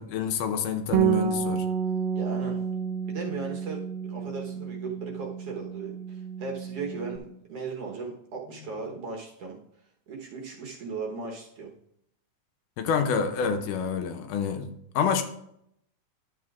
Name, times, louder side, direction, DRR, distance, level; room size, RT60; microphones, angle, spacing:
voice 1, 0.0-1.7 12.8-15.2, left 6 dB, 90° left, 2.3 m, -28 dB
Bass guitar, 0.9-7.2, right 8 dB, 80° right, 1.9 m, -30 dB
voice 2, 2.2-2.6 3.1-9.6 10.1-11.7, right 4 dB, 60° right, 1.8 m, -37 dB
11.0 x 7.9 x 2.4 m
omnidirectional pair, 3.6 m